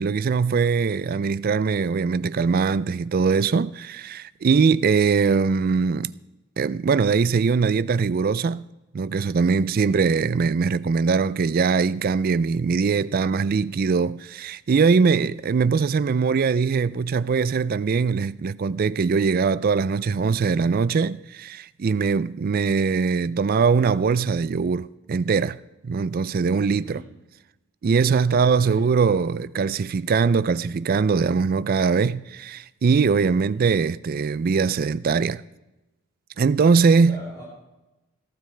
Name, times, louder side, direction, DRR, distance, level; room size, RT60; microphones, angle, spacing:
voice 1, 0.0-6.1 6.6-8.7 8.9-25.6 25.8-27.0 27.8-35.4 36.4-37.2, right 5 dB, 40° right, 0.3 m, -21 dB
voice 2, 26.6-27.1 28.2-28.8 33.3-33.7 37.0-37.4, right 1 dB, 20° left, 4.9 m, -43 dB
18.0 x 12.5 x 3.3 m
head